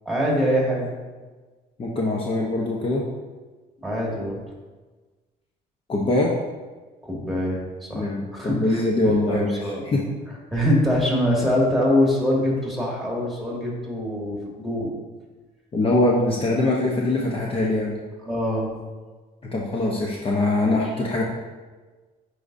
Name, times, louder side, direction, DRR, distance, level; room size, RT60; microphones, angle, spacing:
voice 1, 0.1-0.9 3.8-4.4 7.0-9.8 10.5-14.9 18.3-18.7 20.6-20.8, equal, ahead, -3 dB, 2.1 m, -24 dB
voice 2, 1.8-3.0 5.9-6.3 7.9-10.0 10.5-10.6 15.7-18.0 19.5-21.2, left 2 dB, 35° left, -3 dB, 0.9 m, -23 dB
9.4 x 4.9 x 2.7 m, 1.3 s
cardioid pair, 110°, 17 cm